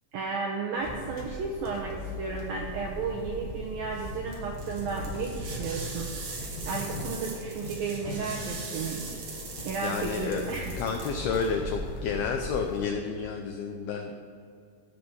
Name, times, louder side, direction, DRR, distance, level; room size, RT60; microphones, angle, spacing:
voice 1, 0.1-9.1 9.7-10.8, right 4 dB, 85° right, 0 dB, 2.1 m, -33 dB
sound 1, 0.8-12.9, left 2 dB, 65° left, 3.0 m, -39 dB
sound 2, 4.3-11.5, right 3 dB, 50° right, 2.4 m, -40 dB
voice 2, 9.8-10.4 10.8-14.1, left 5 dB, 90° left, 4 dB, 2.1 m, -30 dB
15.5 x 6.1 x 5.5 m, 2.4 s
omnidirectional pair, 5.3 m